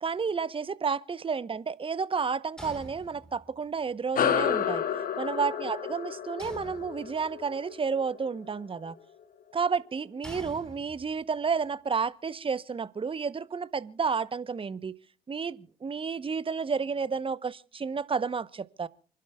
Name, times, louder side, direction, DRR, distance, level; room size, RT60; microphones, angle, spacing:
voice 1, 0.0-4.8 5.2-9.0 9.5-14.9 15.3-18.9, right 5 dB, 30° right, 0.8 m, -31 dB
sound 1, 2.6-3.7 6.4-7.4 10.2-11.3, right 1 dB, 5° left, 4.7 m, -46 dB
sound 2, 4.1-9.0, left 8 dB, 55° left, 1.3 m, -31 dB
29.5 x 11.5 x 2.3 m
hypercardioid pair, 50°, 18 cm